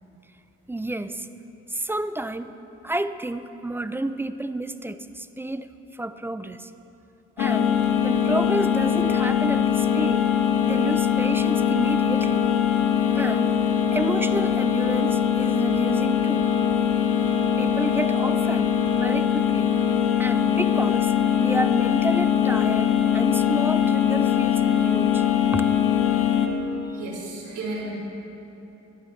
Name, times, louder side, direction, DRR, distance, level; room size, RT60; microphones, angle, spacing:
voice 1, 0.7-1.3 1.7-2.5 2.8-5.7 5.9-6.7 7.4-7.7 8.0-10.3 10.6-12.4 13.1-13.5 13.9-16.4 17.6-19.8 20.2-21.1 21.4-25.3 25.5-25.7, right 1 dB, 10° right, 12 dB, 0.4 m, -30 dB
sound 1, 7.4-26.5, left 9 dB, 85° left, 1.1 m, -22 dB
voice 2, 26.9-28.0, right 2 dB, 75° right, -3 dB, 3.5 m, -33 dB
19.0 x 12.0 x 3.2 m, 3.0 s
cardioid pair, 90°, 30 cm